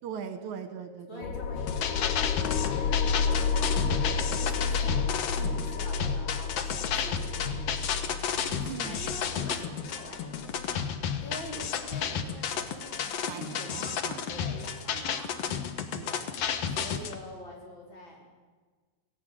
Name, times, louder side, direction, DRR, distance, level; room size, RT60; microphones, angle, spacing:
voice 1, 0.0-1.2 5.4-5.6 8.6-9.0 13.3-14.2 14.9-15.3 15.9-16.3, right 7 dB, 75° right, 9 dB, 2.5 m, -41 dB
voice 2, 1.1-4.1 4.3-15.6 15.9-16.2 16.7-18.2, left 1 dB, 35° left, -2 dB, 5.2 m, -45 dB
sound 1, 1.2-12.3, left 5 dB, 80° left, 2.2 m, -31 dB
sound 2, 1.6-17.1, left 7 dB, 60° left, 2.0 m, -32 dB
17.0 x 17.0 x 8.9 m, 1.4 s
omnidirectional pair, 3.6 m